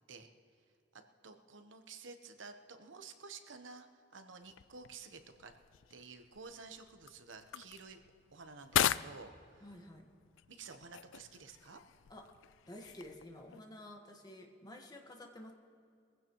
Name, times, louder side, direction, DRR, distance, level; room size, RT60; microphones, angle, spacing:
voice 1, 0.9-5.5 5.9-8.0 8.3-9.7 10.5-11.8, right 4 dB, 75° right, 7 dB, 1.0 m, -52 dB
sound 1, 4.4-13.6, left 11 dB, 80° left, 0.3 m, -40 dB
voice 2, 9.6-10.1 12.1-12.2 12.7-15.5, left 1 dB, 20° left, 2 dB, 1.4 m, -51 dB
21.5 x 15.5 x 3.1 m, 2.3 s
head